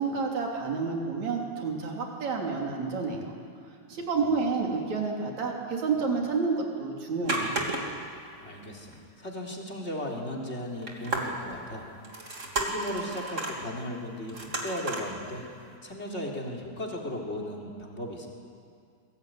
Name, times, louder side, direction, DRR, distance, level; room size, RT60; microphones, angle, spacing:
voice 1, 0.0-3.3 3.9-7.6, right 4 dB, 65° right, 0 dB, 4.5 m, -29 dB
sound 1, 7.2-8.1 8.4-8.5 8.9-9.0 10.8-11.6 12.0-13.6 14.3-15.1 15.6-15.7, right 2 dB, 25° right, 3.1 m, -32 dB
voice 2, 8.4-11.9 12.5-15.5 15.8-18.3, left 1 dB, 20° left, -1 dB, 3.6 m, -36 dB
25.0 x 22.0 x 9.4 m, 2.4 s
omnidirectional pair, 3.5 m